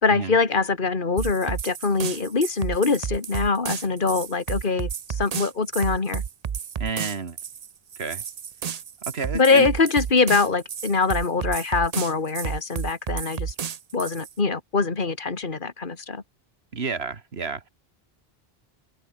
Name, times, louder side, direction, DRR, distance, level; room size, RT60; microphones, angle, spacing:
voice 1, 0.0-6.2 9.3-13.5 13.9-16.2, left 4 dB, 55° left, 2.2 m, -23 dB
sound 1, 1.2-14.3, right 7 dB, 45° right, 0.7 m, -32 dB
voice 2, 6.8-7.4 8.0-8.2 9.1-9.7 16.7-17.7, right 5 dB, 80° right, 2.0 m, -30 dB
omnidirectional pair, 1.0 m